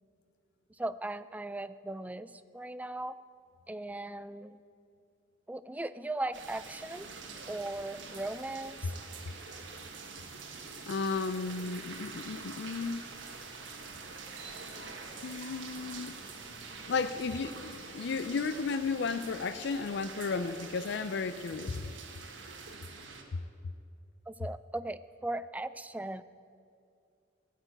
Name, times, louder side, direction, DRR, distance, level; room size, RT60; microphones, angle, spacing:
voice 1, 0.7-3.1 3.7-4.6 5.5-7.1 7.5-8.9 24.3-26.2, right 2 dB, 10° right, 13 dB, 0.3 m, -38 dB
sound 1, 6.3-23.2, right 4 dB, 70° right, 1.5 m, -45 dB
voice 2, 10.9-13.0 14.8-14.9 15.2-16.2 16.9-21.9, left 4 dB, 60° left, 12 dB, 0.4 m, -34 dB
15.5 x 6.7 x 9.0 m, 2.4 s
head